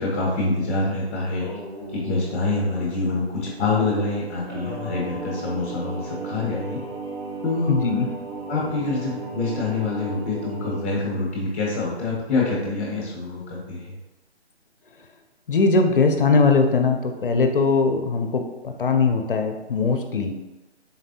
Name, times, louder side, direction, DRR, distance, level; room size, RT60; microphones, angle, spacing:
voice 1, 0.0-1.5 1.9-6.8 7.4-7.7 8.5-13.9, left 3 dB, 10° left, -4 dB, 0.6 m, -26 dB
Singing, 1.1-10.8, right 2 dB, 20° right, 0.8 m, -36 dB
voice 2, 7.7-8.1 15.5-20.3, left 4 dB, 50° left, 5 dB, 0.5 m, -20 dB
4.1 x 3.3 x 2.7 m, 1.1 s
hypercardioid pair, 160°, 34 cm